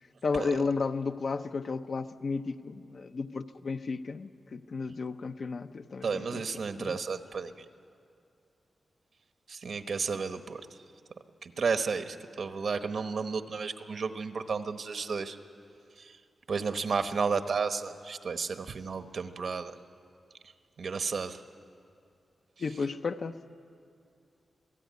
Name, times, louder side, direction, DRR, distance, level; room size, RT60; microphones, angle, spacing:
voice 1, 0.2-6.4 6.8-7.0 22.6-23.4, left 4 dB, 50° left, 8 dB, 0.7 m, -33 dB
voice 2, 6.0-7.5 9.5-10.6 11.4-15.4 16.0-16.1 16.5-19.8 20.8-21.4, right 5 dB, 60° right, 8 dB, 1.1 m, -32 dB
26.5 x 17.0 x 9.4 m, 2.5 s
wide cardioid pair, 155°, 0 cm